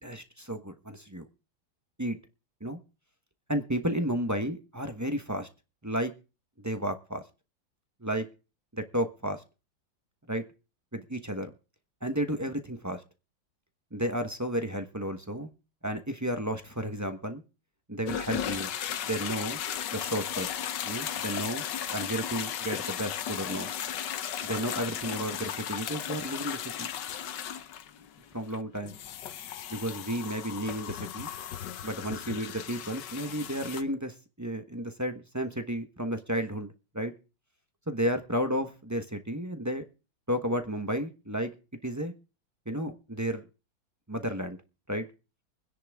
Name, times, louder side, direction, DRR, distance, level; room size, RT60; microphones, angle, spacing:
voice 1, 0.0-1.3 2.0-2.2 2.6-2.8 3.5-5.5 5.8-6.1 6.6-7.2 8.0-8.3 8.7-9.4 10.3-10.4 10.9-11.5 12.0-13.0 13.9-15.5 15.8-17.4 17.9-18.7 19.0-19.6 19.9-20.5 20.8-21.6 21.9-23.7 24.4-26.9 28.3-29.0 29.7-31.3 31.8-37.1 37.9-39.8 40.3-41.5 41.8-42.1 42.7-43.4 44.1-44.6 44.9-45.1, equal, 15° right, 7 dB, 0.7 m, -32 dB
sound 1, 18.1-33.8, left 9 dB, 65° left, 1.5 m, -36 dB
23.5 x 10.5 x 3.6 m, 0.33 s
omnidirectional pair, 2.1 m